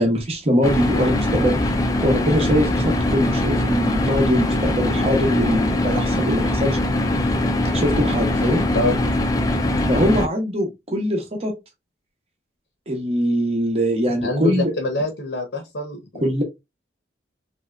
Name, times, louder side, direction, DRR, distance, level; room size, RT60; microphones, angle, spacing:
voice 1, 0.0-1.8 2.0-6.8 7.7-8.6 9.9-11.5 12.9-14.7 16.2-16.4, equal, 35° right, 0.8 m, -22 dB
sound 1, 0.6-10.3, left 1 dB, 20° left, 0.4 m, -21 dB
voice 2, 14.2-16.3, left 2 dB, 80° left, 0.8 m, -25 dB
3.2 x 2.7 x 2.3 m
head